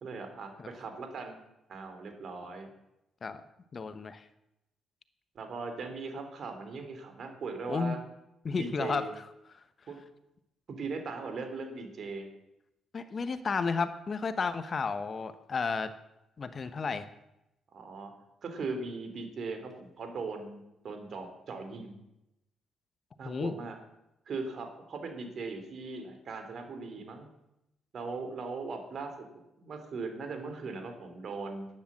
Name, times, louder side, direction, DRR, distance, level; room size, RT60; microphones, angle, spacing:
voice 1, 0.0-1.4 1.7-2.7 5.3-8.0 8.5-9.1 9.9-10.0 10.7-12.3 17.7-18.1 18.4-22.0 23.2-23.8 24.3-27.3 27.9-31.7, right 4 dB, 55° right, 6 dB, 3.2 m, -39 dB
voice 2, 3.7-4.2 7.7-8.0 8.4-9.0 12.9-15.9 16.4-17.1 23.2-23.5, left 5 dB, 40° left, 11 dB, 1.0 m, -32 dB
11.5 x 10.0 x 7.5 m, 0.87 s
cardioid pair, 90°, 0 cm